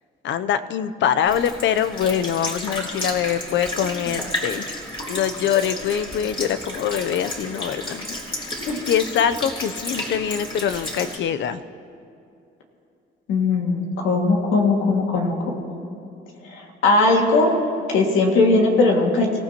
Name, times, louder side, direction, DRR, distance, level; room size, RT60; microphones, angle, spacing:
voice 1, 0.2-4.7 5.1-8.1 8.4-8.6 8.9-11.6, left 9 dB, 65° left, 12 dB, 0.6 m, -24 dB
Sink (filling or washing) / Liquid, 1.3-11.2, left 1 dB, 25° left, 3.3 m, -32 dB
voice 2, 13.3-15.6 16.5-17.5 17.9-19.4, left 3 dB, 85° left, 0 dB, 2.1 m, -19 dB
26.5 x 15.0 x 3.0 m, 2.5 s
cardioid pair, 90°, 20 cm